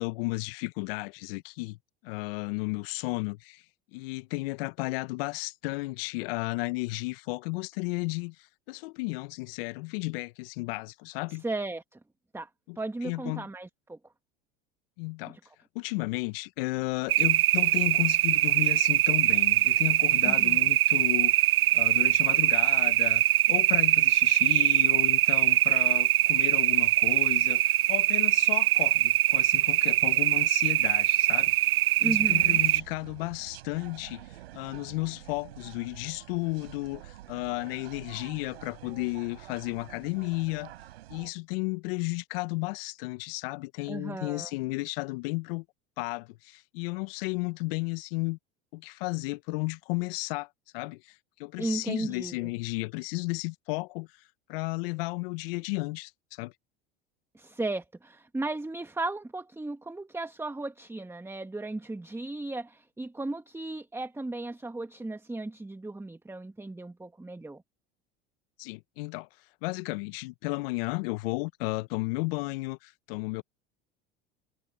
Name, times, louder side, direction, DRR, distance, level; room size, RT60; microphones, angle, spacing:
voice 1, 0.0-1.8 2.0-3.6 3.9-8.3 8.7-11.4 12.7-12.8 13.0-13.5 15.0-15.4 15.7-21.3 21.7-31.5 32.0-34.2 34.5-37.0 37.3-40.7 41.1-45.6 46.0-48.4 48.7-50.5 50.7-51.0 51.4-54.1 54.5-56.1 56.4-56.5 68.6-69.3 69.6-72.8 73.1-73.4, left 25 dB, 70° left, 1.3 m, -33 dB
voice 2, 11.3-12.0 12.3-12.5 12.8-14.0 15.2-15.4 20.2-20.7 32.0-32.6 43.8-44.5 51.6-52.5 57.3-67.6, right 2 dB, 10° right, 1.7 m, -35 dB
sound 1, 17.1-32.8, right 14 dB, 45° right, 1.0 m, -23 dB
sound 2, 32.1-41.3, right 14 dB, 80° right, 5.9 m, -48 dB
hypercardioid pair, 80°, 30 cm